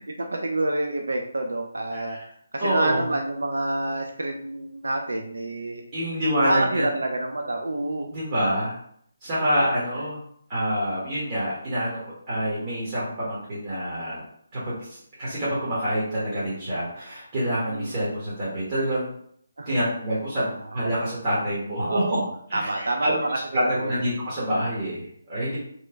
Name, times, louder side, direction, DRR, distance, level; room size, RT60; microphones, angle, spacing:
voice 1, 0.0-2.2 2.5-5.8 6.4-8.1 17.7-18.0 19.6-19.7 20.4-20.7 21.8-24.0, right 2 dB, 85° right, 3 dB, 0.4 m, -28 dB
voice 2, 2.6-3.1 5.9-6.9 8.1-8.7 9.2-10.2 10.5-14.2 14.5-19.1 19.6-22.2 22.5-23.1 23.5-25.6, equal, 35° right, -8 dB, 1.0 m, -27 dB
3.0 x 2.0 x 3.3 m, 0.66 s
figure-of-eight pair, 160°, 0 cm